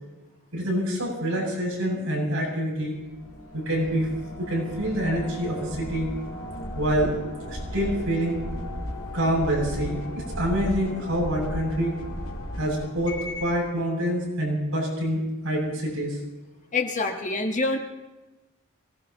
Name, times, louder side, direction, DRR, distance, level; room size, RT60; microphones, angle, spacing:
voice 1, 0.5-3.0 3.5-4.1 4.4-6.1 6.8-7.2 7.5-8.4 9.1-12.0 12.5-16.2, equal, 70° right, -2 dB, 7.9 m, -26 dB
sound 1, 3.0-13.7, left 1 dB, 80° left, 2.8 m, -35 dB
voice 2, 16.7-17.8, left 3 dB, 35° left, 4 dB, 1.5 m, -26 dB
24.0 x 18.5 x 3.1 m, 1.1 s
head